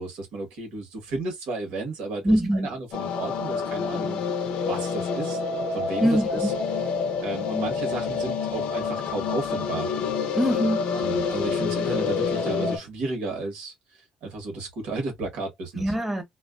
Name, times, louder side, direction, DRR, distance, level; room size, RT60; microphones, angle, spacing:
voice 1, 0.0-4.2 4.7-5.4 5.7-6.5 7.2-9.9 10.9-13.7 14.2-15.9, right 3 dB, 90° right, 1.2 m, -33 dB
voice 2, 2.2-2.7 6.0-6.3 10.3-11.0 15.7-16.2, equal, 10° right, 1.0 m, -23 dB
sound 1, 2.9-12.8, left 5 dB, 80° left, 0.6 m, -27 dB
2.3 x 2.3 x 2.3 m
cardioid pair, 95°, 2 cm